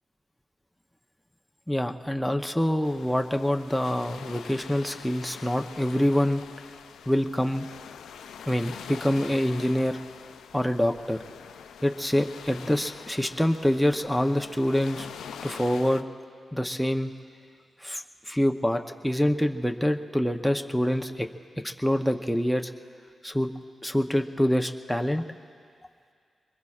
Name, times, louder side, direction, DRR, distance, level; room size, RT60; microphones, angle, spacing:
voice 1, 1.7-6.4 7.1-7.7 8.5-10.0 10.5-11.2 11.8-15.1 15.4-16.0 16.5-17.1 17.8-21.3 21.6-22.7 23.2-23.5 23.8-25.2, equal, 5° left, 4 dB, 0.8 m, -26 dB
sound 1, 2.8-16.0, left 7 dB, 85° left, 0.5 m, -44 dB
24.5 x 21.5 x 2.5 m, 2.2 s
supercardioid pair, 45°, 0 cm